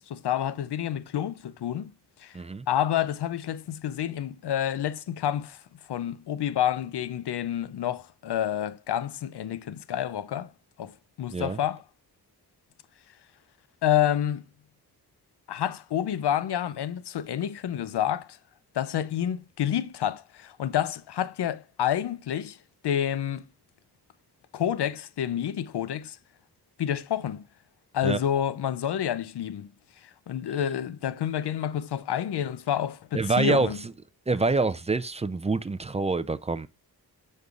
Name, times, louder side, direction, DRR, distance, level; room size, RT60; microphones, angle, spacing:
voice 1, 0.0-1.9 2.2-2.4 2.7-5.6 5.9-10.5 10.8-10.9 11.2-11.8 13.8-14.4 15.5-18.4 18.7-22.6 22.8-23.5 24.5-26.2 26.8-27.4 27.9-29.7 30.0-33.8, left 10 dB, 80° left, 0.5 m, -29 dB
voice 2, 2.3-2.7 11.3-11.6 28.0-28.2 33.1-33.9 34.3-36.7, right 3 dB, 20° right, 0.3 m, -26 dB
7.8 x 5.4 x 2.4 m
wide cardioid pair, 65°, 39 cm